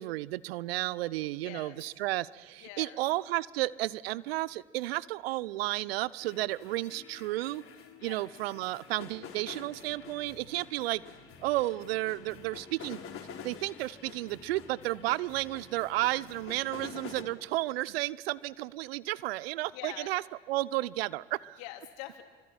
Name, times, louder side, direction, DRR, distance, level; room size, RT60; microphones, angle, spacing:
voice 1, 0.0-7.6 8.0-11.0 11.4-13.0 13.4-20.2 20.5-21.6, right 18 dB, 70° right, 21 dB, 0.8 m, -32 dB
voice 2, 1.4-1.7 2.6-3.0 8.0-8.2 19.7-20.1 21.6-22.2, left 14 dB, 65° left, 5 dB, 3.2 m, -44 dB
sound 1, 6.2-17.2, left 6 dB, 45° left, 4.0 m, -48 dB
26.5 x 24.5 x 8.8 m, 1.5 s
figure-of-eight pair, 65°, 31 cm